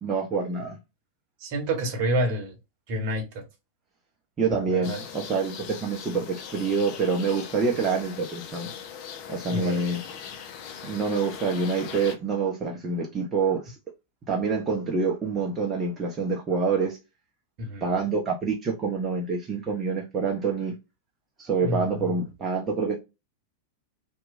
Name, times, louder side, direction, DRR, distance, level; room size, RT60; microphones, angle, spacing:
voice 1, 0.0-0.8 4.4-8.7 9.3-10.0 10.8-13.8 14.3-17.0 17.8-20.7 21.4-23.0, right 4 dB, 25° right, 0.6 m, -26 dB
voice 2, 1.4-2.5 2.9-3.4 4.7-5.0 9.5-9.9 17.6-17.9 21.6-21.9, right 1 dB, 45° right, 0.9 m, -28 dB
sound 1, 4.8-12.2, left 7 dB, 45° left, 0.5 m, -40 dB
2.9 x 2.2 x 2.5 m
figure-of-eight pair, 90°, 0 cm